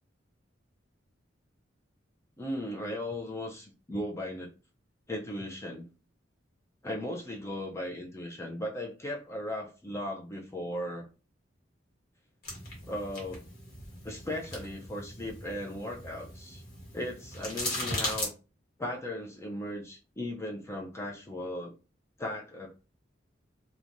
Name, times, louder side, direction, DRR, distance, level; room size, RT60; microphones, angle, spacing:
voice 1, 2.4-4.5 5.1-5.8 6.8-11.1 12.9-13.4 14.0-16.6 16.9-18.3 18.8-21.7 22.2-22.7, left 1 dB, 15° left, -1 dB, 0.4 m, -37 dB
sound 1, 12.4-18.3, left 1 dB, 55° left, 1.3 m, -38 dB
3.0 x 2.2 x 2.5 m, 0.33 s
head